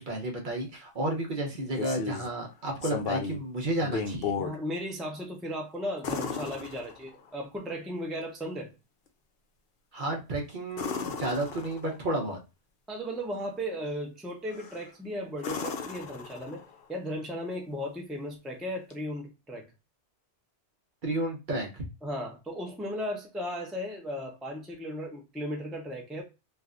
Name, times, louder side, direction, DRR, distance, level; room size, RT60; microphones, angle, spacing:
voice 1, 0.0-4.3 9.9-12.4 21.0-21.8, right 1 dB, 50° right, 0.8 m, -32 dB
sound 1, 1.5-2.3 2.8-3.4 3.8-4.6 6.0-7.3 10.7-12.0 14.5-14.9 15.4-16.8 18.9-19.0, left 5 dB, 60° left, 0.7 m, -35 dB
voice 2, 4.4-8.7 12.9-16.6 16.9-19.7 22.0-26.2, equal, ahead, 0.4 m, -36 dB
3.2 x 2.5 x 2.4 m
omnidirectional pair, 1.2 m